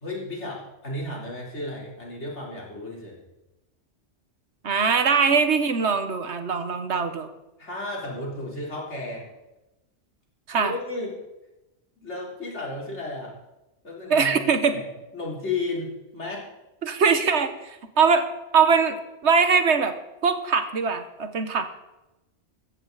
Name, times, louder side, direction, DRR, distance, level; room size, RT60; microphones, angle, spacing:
voice 1, 0.0-3.2 7.6-9.3 10.6-11.2 12.0-13.3 13.8-14.3 14.6-16.5, left 2 dB, 75° left, -3 dB, 4.0 m, -33 dB
voice 2, 4.6-7.3 10.5-10.7 14.1-14.7 16.8-17.5 18.0-19.0 19.2-19.9 20.2-21.7, right 5 dB, 70° right, 9 dB, 1.4 m, -21 dB
15.0 x 14.5 x 4.0 m, 0.97 s
omnidirectional pair, 1.2 m